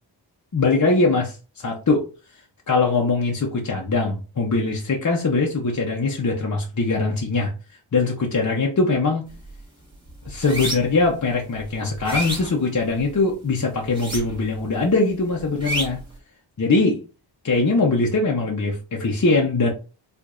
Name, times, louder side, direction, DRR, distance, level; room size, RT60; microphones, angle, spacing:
voice 1, 0.5-2.0 2.7-7.5 7.9-9.2 10.3-16.0 16.6-17.0 17.4-19.7, left 3 dB, 40° left, -1 dB, 0.8 m, -21 dB
sound 1, 9.3-9.6 9.9-11.1 11.5-13.2 13.9-14.6 14.9-16.1, right 1 dB, 10° right, 1.5 m, -30 dB
4.7 x 2.5 x 2.5 m, 0.34 s
wide cardioid pair, 75°, 45 cm